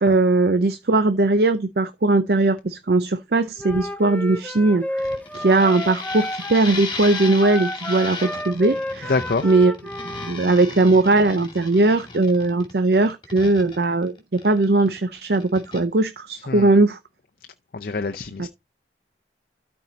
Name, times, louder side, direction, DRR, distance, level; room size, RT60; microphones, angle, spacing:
voice 1, 0.0-5.1 5.3-9.1 9.4-9.7 10.2-17.0 18.4-18.5, right 2 dB, 60° right, 0.7 m, -19 dB
Wind instrument woodwind instrument, 3.6-6.7 7.0-10.4, equal, 10° left, 0.6 m, -31 dB
sound 1, 5.0-15.0 15.3-15.8, left 4 dB, 30° left, 2.5 m, -35 dB
voice 2, 9.1-9.5 16.5-16.7 17.7-18.5, left 3 dB, 55° left, 0.6 m, -26 dB
12.5 x 4.6 x 4.0 m
head